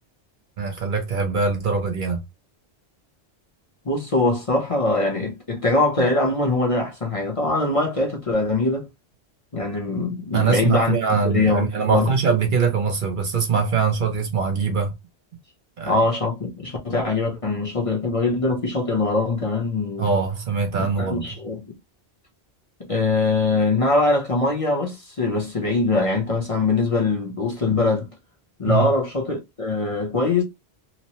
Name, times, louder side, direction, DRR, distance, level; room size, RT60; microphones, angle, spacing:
voice 1, 0.6-2.2 10.3-14.9 15.8-15.9 20.0-21.4 28.6-28.9, right 5 dB, 55° right, 0.7 m, -22 dB
voice 2, 3.8-8.9 9.5-11.0 11.2-12.1 15.9-20.1 21.0-21.6 22.8-28.1 28.6-30.4, left 3 dB, 35° left, 0.7 m, -22 dB
3.0 x 2.0 x 2.8 m
omnidirectional pair, 1.1 m